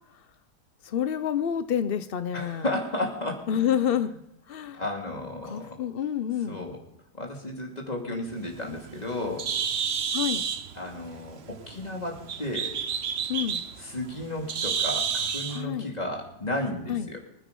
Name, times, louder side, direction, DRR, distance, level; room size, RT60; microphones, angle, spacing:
voice 1, 0.8-2.6 3.5-4.1 4.5-4.8 5.4-6.6 10.1-10.4 13.3-13.6 15.5-15.9 16.9-17.1, left 9 dB, 65° left, 11 dB, 0.5 m, -28 dB
voice 2, 2.3-4.1 4.7-5.7 6.5-6.8 7.1-9.4 10.7-12.7 13.8-17.2, left 1 dB, 25° left, 0 dB, 3.0 m, -33 dB
Bird, 8.3-15.6, right 7 dB, 50° right, 0.9 m, -31 dB
25.0 x 9.3 x 5.4 m, 0.85 s
omnidirectional pair, 1.8 m